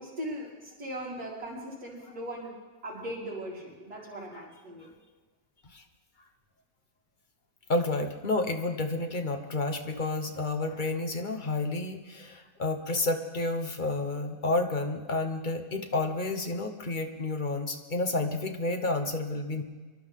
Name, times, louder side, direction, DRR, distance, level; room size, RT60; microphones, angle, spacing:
voice 1, 0.0-2.5 2.8-4.9, right 1 dB, 85° right, -10 dB, 5.3 m, -39 dB
voice 2, 7.7-19.6, left 2 dB, 35° left, 5 dB, 1.1 m, -30 dB
25.0 x 12.0 x 3.6 m, 1.3 s
omnidirectional pair, 1.7 m